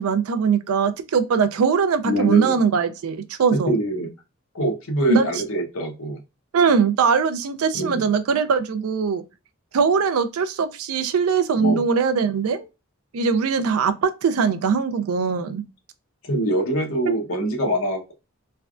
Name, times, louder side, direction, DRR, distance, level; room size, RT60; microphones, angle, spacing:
voice 1, 0.0-3.7 5.1-5.3 6.5-9.2 9.7-12.7 13.1-15.6, right 5 dB, 85° right, 0.4 m, -21 dB
voice 2, 2.1-2.6 3.7-4.1 4.5-6.2 7.7-8.1 11.5-11.8 16.3-18.1, right 1 dB, 65° left, 0.9 m, -24 dB
3.3 x 2.3 x 2.4 m
head